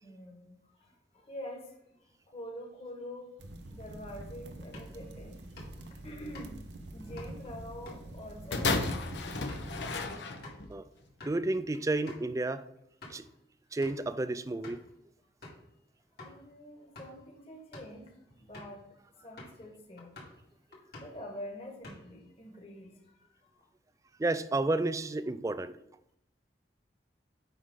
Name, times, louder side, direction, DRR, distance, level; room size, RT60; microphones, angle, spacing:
voice 1, 0.0-3.4 3.7-5.5 6.0-9.0 16.2-18.8 19.2-20.2 20.8-23.7, equal, 35° left, 1.5 m, -46 dB
sound 1, 3.4-10.1, right 1 dB, 80° right, 0.8 m, -46 dB
sound 2, 4.6-10.7 11.1-11.4 11.7-11.8 12.1-12.3 12.8-13.3 13.8-14.1 14.6-14.9 15.4-15.7 16.2-16.4 16.8-17.2 17.6-18.0 18.5-18.8 19.4-19.7 20.0-20.4 20.7-21.3 21.6-22.3, left 1 dB, 60° left, 2.3 m, -50 dB
sound 3, 8.5-10.8 11.6-11.7, left 3 dB, 85° left, 0.9 m, -32 dB
voice 2, 11.2-12.6 13.1-13.3 13.7-14.8 24.2-25.7, right 2 dB, 20° right, 0.4 m, -31 dB
8.0 x 5.4 x 3.8 m
head